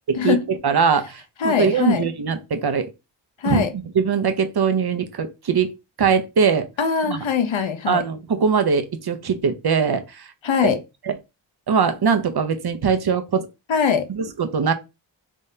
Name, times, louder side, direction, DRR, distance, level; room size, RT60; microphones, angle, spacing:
voice 1, 0.2-2.9 3.4-5.7 6.0-6.7 7.1-7.3 7.9-10.3 10.6-10.7 11.0-11.1 11.7-13.5 14.1-14.7, right 6 dB, 55° right, 0.7 m, -21 dB
voice 2, 1.4-2.0 3.4-3.7 6.8-8.0 10.4-10.8 13.7-14.1, left 6 dB, 80° left, 0.8 m, -21 dB
3.6 x 3.5 x 2.7 m
wide cardioid pair, 60°, 45 cm